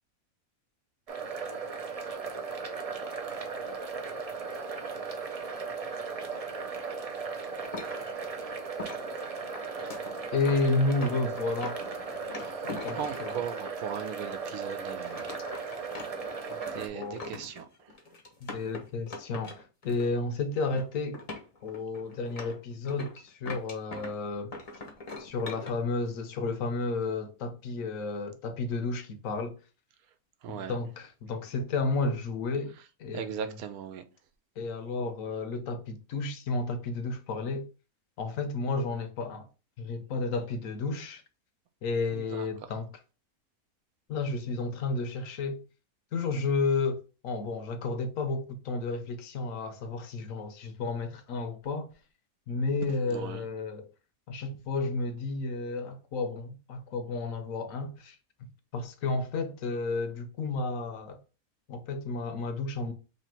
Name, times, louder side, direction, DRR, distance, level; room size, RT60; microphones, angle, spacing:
sound 1, 1.1-16.9, right 5 dB, 55° right, 0.4 m, -37 dB
sound 2, 7.6-13.6 14.3-14.4 14.8-20.3 20.5-20.9 21.1-24.2 24.5-25.7, left 3 dB, 40° left, 0.5 m, -42 dB
voice 1, 10.3-11.8 12.8-13.4 16.9-17.2 18.4-19.5 19.8-21.2 21.6-24.5 25.2-29.6 30.5-32.7 33.0-33.5 34.6-37.7 38.2-39.5 39.8-41.2 41.8-42.9 44.1-45.6 46.1-51.9 52.5-53.9 54.3-58.2 58.7-61.2 61.7-62.9, left 3 dB, 70° left, 1.0 m, -32 dB
voice 2, 13.0-15.4 15.7-16.1 16.5-17.9 30.4-30.8 33.1-34.0 42.1-42.7 53.1-53.5, right 8 dB, 85° right, 1.1 m, -39 dB
3.2 x 2.7 x 4.3 m
omnidirectional pair, 1.5 m